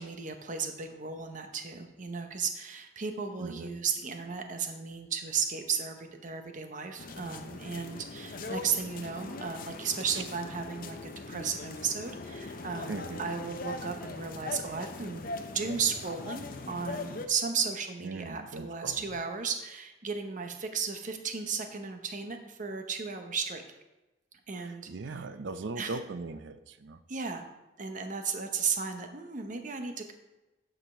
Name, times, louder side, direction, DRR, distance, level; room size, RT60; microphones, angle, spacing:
voice 1, 0.0-23.6 24.5-24.9 25.8-26.0 27.1-27.5 27.8-30.1, right 6 dB, 45° right, 6 dB, 0.8 m, -35 dB
sound 1, 7.0-17.3, left 3 dB, 50° left, 0.6 m, -41 dB
voice 2, 12.9-13.2 18.0-19.0 24.6-27.0, right 3 dB, 80° right, 11 dB, 0.5 m, -39 dB
8.5 x 5.2 x 4.3 m, 1.0 s
head